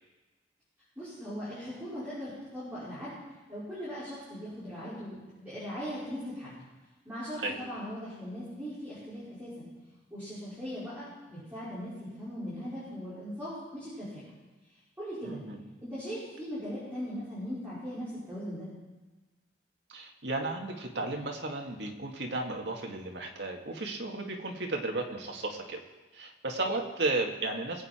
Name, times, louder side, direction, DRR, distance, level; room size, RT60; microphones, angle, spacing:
voice 1, 1.0-3.1 3.5-6.5 7.0-9.7 10.1-14.2 15.0-15.4 15.8-18.7, equal, 10° right, -13 dB, 5.6 m, -39 dB
voice 2, 15.2-15.7 19.9-25.8 26.1-27.9, right 2 dB, 70° right, 1 dB, 2.0 m, -34 dB
22.5 x 8.7 x 4.5 m, 1.2 s
head